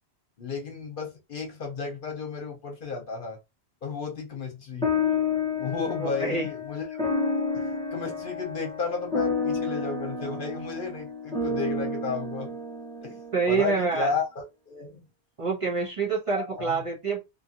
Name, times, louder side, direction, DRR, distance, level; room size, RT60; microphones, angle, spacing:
voice 1, 0.4-3.4 3.8-4.9 5.5-6.8 7.5-12.6 13.0-13.2 13.5-15.0 16.3-16.8, left 5 dB, 55° left, 0.9 m, -33 dB
sound 1, 4.8-13.5, left 4 dB, 5° left, 0.7 m, -30 dB
voice 2, 6.0-6.5 13.3-14.1 15.4-17.2, right 4 dB, 35° right, 0.8 m, -26 dB
2.7 x 2.5 x 2.8 m
omnidirectional pair, 1.1 m